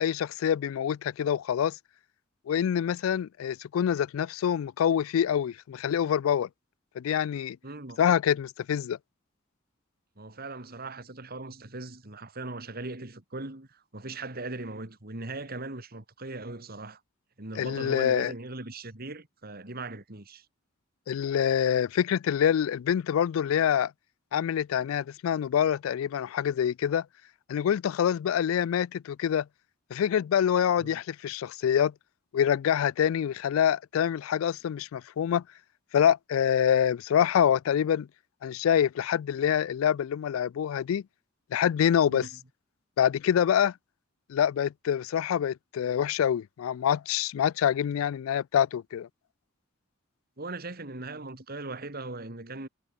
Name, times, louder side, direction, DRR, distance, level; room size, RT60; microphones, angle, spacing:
voice 1, 0.0-1.8 2.5-6.5 7.0-7.6 8.0-9.0 17.6-18.3 21.1-23.9 24.3-27.1 27.5-29.5 29.9-31.9 32.3-35.4 35.9-38.1 38.4-41.0 41.5-42.3 43.0-43.7 44.3-49.1, left 9 dB, 85° left, 0.3 m, -26 dB
voice 2, 7.6-8.0 10.2-17.0 17.4-20.5 30.8-31.0 42.1-42.3 50.4-52.7, right 2 dB, 50° right, 2.8 m, -39 dB
head